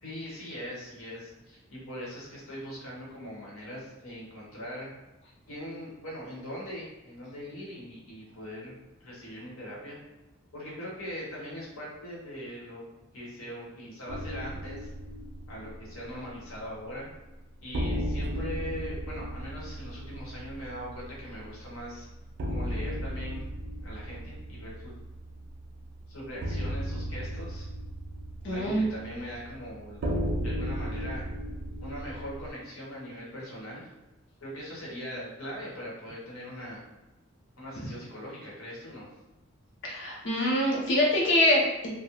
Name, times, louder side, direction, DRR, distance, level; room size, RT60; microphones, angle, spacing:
voice 1, 0.0-4.9 5.5-8.7 9.0-10.0 10.5-12.8 13.1-14.9 15.5-17.1 17.6-22.1 22.4-23.4 23.8-24.9 26.1-27.7 28.5-30.1 30.4-31.2 31.8-33.9 34.4-36.8 37.6-39.1, equal, 85° left, -5 dB, 1.0 m, -41 dB
sound 1, 14.1-16.9 17.2-17.3 17.7-32.5, equal, 55° right, 0.3 m, -35 dB
voice 2, 28.4-28.8 39.8-41.9, left 1 dB, 60° left, -3 dB, 0.7 m, -24 dB
2.3 x 2.2 x 2.9 m, 1.0 s
head